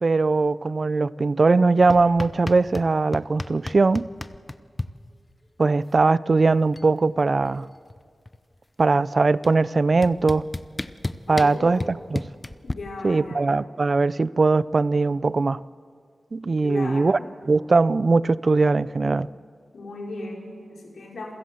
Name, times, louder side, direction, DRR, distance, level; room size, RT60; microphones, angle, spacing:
voice 1, 0.0-4.1 5.6-7.7 8.8-10.4 11.3-12.2 13.0-15.6 16.3-17.2 17.5-19.3, right 3 dB, 50° right, 0.5 m, -20 dB
sound 1, 1.9-2.9 3.1-4.9 6.2-6.3 6.5-6.9 7.2-8.6 9.4-9.5 10.0-12.7, left 2 dB, 20° left, 0.7 m, -32 dB
voice 2, 11.3-11.9 12.6-13.5 16.6-17.3 19.7-21.3, left 2 dB, 85° left, 5.1 m, -36 dB
27.0 x 16.0 x 7.8 m
wide cardioid pair, 85°, 0 cm